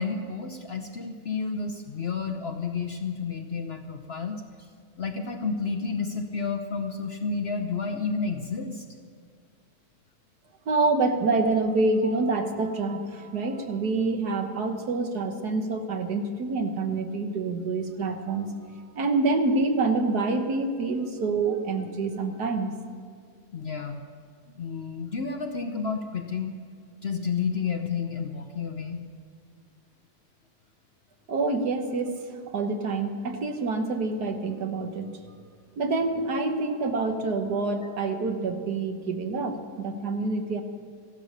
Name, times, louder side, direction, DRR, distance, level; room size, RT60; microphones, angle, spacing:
voice 1, 0.0-4.4 5.0-8.8 12.0-12.1 23.5-24.0 24.5-26.6 27.0-29.0, left 5 dB, 50° left, 5 dB, 0.9 m, -31 dB
voice 2, 10.7-18.5 18.8-22.7 31.3-35.1 35.8-40.6, right 3 dB, 70° right, 5 dB, 1.7 m, -27 dB
15.0 x 12.5 x 6.6 m, 2.1 s
omnidirectional pair, 1.8 m